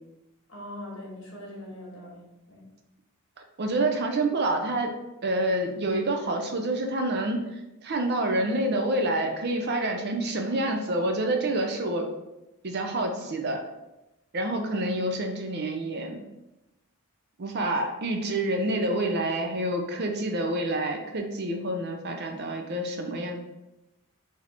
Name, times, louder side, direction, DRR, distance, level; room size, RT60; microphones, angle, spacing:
voice 1, 0.5-2.7, left 1 dB, 55° left, -3 dB, 1.5 m, -42 dB
voice 2, 3.6-4.9 5.2-12.1 12.6-13.6 14.3-16.2 17.4-23.4, right 1 dB, 45° right, 4 dB, 0.5 m, -28 dB
4.1 x 2.8 x 4.3 m, 0.96 s
head